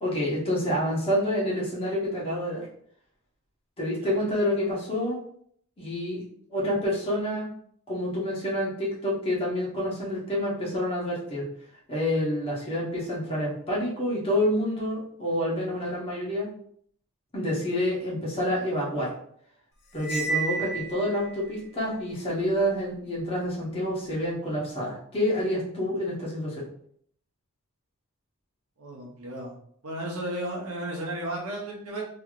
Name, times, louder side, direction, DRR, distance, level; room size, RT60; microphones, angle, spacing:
voice 1, 0.0-2.7 3.8-5.2 5.8-6.2 6.5-7.5 7.9-11.4 11.9-16.5 17.3-19.1 19.9-26.6, equal, 25° left, -5 dB, 1.1 m, -28 dB
Cymbal, 20.0-21.4, right 4 dB, 90° left, 0.6 m, -31 dB
voice 2, 28.8-29.5 29.8-32.0, right 1 dB, 75° right, -2 dB, 0.9 m, -34 dB
3.1 x 2.9 x 2.4 m, 0.64 s
head